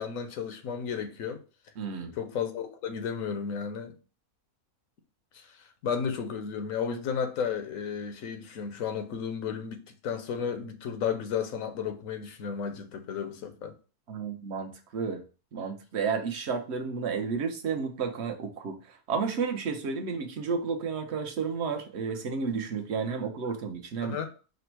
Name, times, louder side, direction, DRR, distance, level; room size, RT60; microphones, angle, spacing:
voice 1, 0.0-1.4 2.2-3.9 5.3-13.7 24.0-24.3, left 7 dB, 70° left, 1.0 m, -33 dB
voice 2, 1.8-2.1 14.1-15.2 15.5-24.2, right 5 dB, 55° right, 0.9 m, -32 dB
5.1 x 2.1 x 4.5 m
omnidirectional pair, 1.5 m